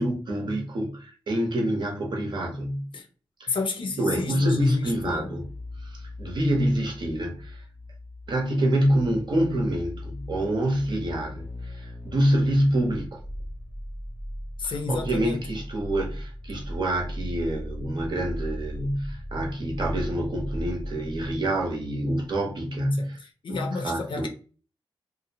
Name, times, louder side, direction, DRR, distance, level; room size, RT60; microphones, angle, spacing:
voice 1, 0.0-2.8 3.4-3.6 4.0-5.4 5.8-7.6 8.3-13.2 14.6-23.2 23.5-24.3, right 1 dB, 55° right, 0.8 m, -27 dB
voice 2, 3.5-5.3 14.6-15.4 22.9-24.3, left 3 dB, 65° left, 0.4 m, -30 dB
sound 1, 4.8-22.3 22.6-22.7, equal, 15° right, 0.4 m, -38 dB
2.6 x 2.0 x 2.6 m
wide cardioid pair, 150°, 9 cm